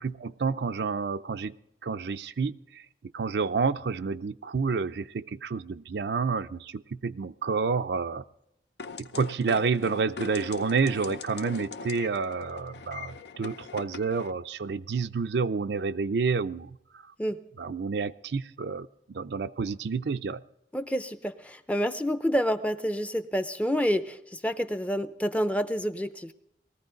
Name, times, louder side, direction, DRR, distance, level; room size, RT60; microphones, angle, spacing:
voice 1, 0.0-1.5 1.8-2.8 3.1-8.2 9.0-17.0 17.6-20.4, right 5 dB, 75° right, 11 dB, 0.5 m, -29 dB
sound 1, 8.8-14.3, left 5 dB, 80° left, 0.7 m, -41 dB
voice 2, 20.7-26.3, equal, 10° left, 10 dB, 0.5 m, -28 dB
20.0 x 14.5 x 3.9 m, 0.81 s
head